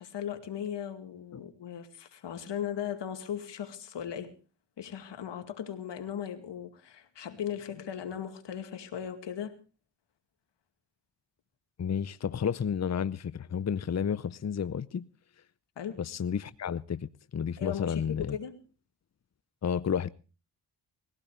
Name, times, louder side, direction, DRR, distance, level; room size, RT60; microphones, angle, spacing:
voice 1, 0.0-4.3 4.8-9.5 15.8-15.9 17.6-18.5, left 9 dB, 85° left, 2.4 m, -37 dB
voice 2, 11.8-15.0 16.0-18.4 19.6-20.1, left 7 dB, 40° left, 0.7 m, -31 dB
21.0 x 16.5 x 3.3 m
cardioid pair, 60°, 42 cm